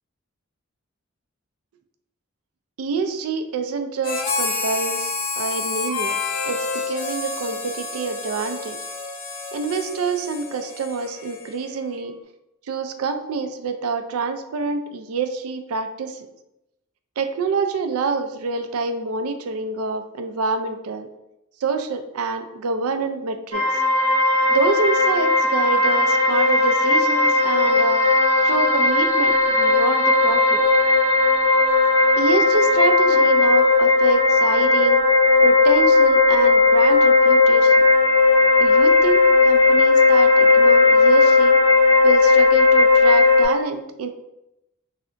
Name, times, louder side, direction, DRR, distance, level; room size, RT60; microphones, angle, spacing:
voice 1, 2.8-6.1 6.4-8.8 9.5-12.1 12.7-16.2 17.2-21.1 21.6-23.7 24.5-28.0 28.4-30.6 32.2-35.0 35.4-37.7 38.6-41.6 42.0-44.1, right 5 dB, 90° right, 8 dB, 0.4 m, -26 dB
Harmonica, 4.0-11.8, left 4 dB, 55° left, 0.7 m, -29 dB
sound 1, 23.5-43.4, left 3 dB, 60° right, 0.9 m, -16 dB
3.2 x 2.5 x 3.7 m, 0.89 s
head